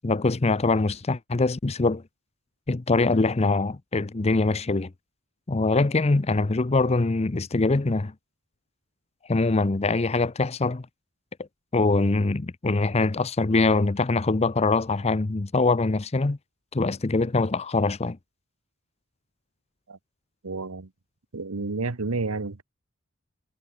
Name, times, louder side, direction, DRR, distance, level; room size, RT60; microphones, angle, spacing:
voice 1, 0.0-2.0 2.7-4.9 5.5-8.1 9.3-10.9 11.7-16.4 16.7-18.2, left 3 dB, 30° left, 0.6 m, -23 dB
voice 2, 20.4-20.9 21.3-22.6, right 3 dB, 90° right, 1.1 m, -30 dB
head